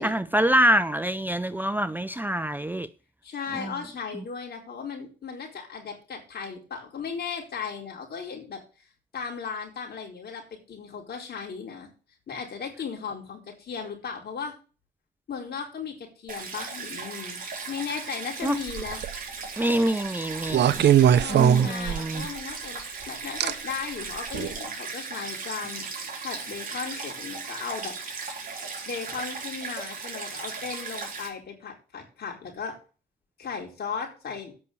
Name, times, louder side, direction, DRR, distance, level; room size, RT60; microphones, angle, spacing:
voice 1, 0.0-2.9 3.5-3.7 18.4-18.6 19.6-20.8 21.3-22.3, right 1 dB, 10° right, 0.5 m, -25 dB
voice 2, 3.2-8.9 9.1-10.4 10.7-11.9 12.3-14.5 15.3-19.0 21.2-27.9 28.9-32.8 33.4-34.5, left 6 dB, 55° left, 4.4 m, -36 dB
Stream, 16.3-31.3, right 4 dB, 45° right, 4.3 m, -37 dB
sound 1, 18.7-19.2 20.5-22.3 23.4-23.5 24.3-24.5, right 10 dB, 60° right, 0.8 m, -20 dB
8.6 x 6.1 x 8.3 m
cardioid pair, 90°, 20 cm